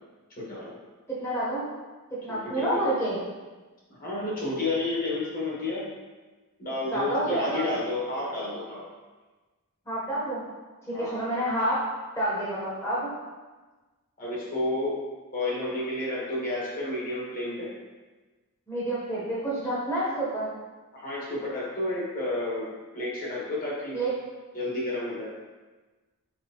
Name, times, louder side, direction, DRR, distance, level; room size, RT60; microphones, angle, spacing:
voice 1, 0.4-0.7 2.3-2.8 3.9-5.8 6.6-8.8 10.9-11.2 14.2-14.9 15.3-17.7 20.9-22.7 22.9-24.0 24.5-25.3, left 2 dB, 40° left, -6 dB, 1.5 m, -31 dB
voice 2, 1.1-1.7 2.1-3.2 6.9-7.6 9.9-10.4 10.9-11.8 12.2-13.1 18.7-20.5 23.9-24.1, right 1 dB, 10° left, -8 dB, 1.0 m, -28 dB
4.4 x 4.1 x 2.9 m, 1.3 s
head